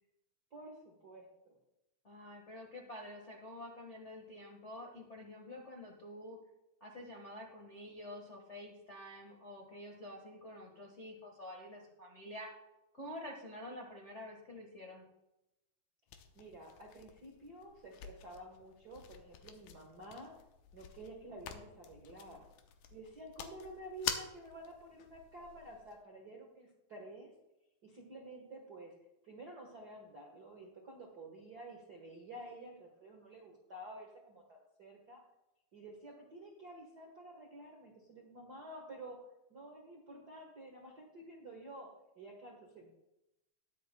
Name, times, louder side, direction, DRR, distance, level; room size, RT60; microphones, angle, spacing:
voice 1, 0.5-1.6 16.3-20.4 20.7-22.5 22.9-27.3 27.8-29.0 29.2-35.2 35.7-39.2 39.5-43.0, right 1 dB, 60° right, 0 dB, 1.0 m, -51 dB
voice 2, 2.0-6.4 6.8-12.5 12.9-15.0, left 1 dB, 60° left, -1 dB, 0.7 m, -48 dB
sound 1, 16.1-26.0, left 8 dB, 85° left, 2.5 m, -47 dB
20.5 x 7.7 x 2.2 m, 0.91 s
omnidirectional pair, 3.9 m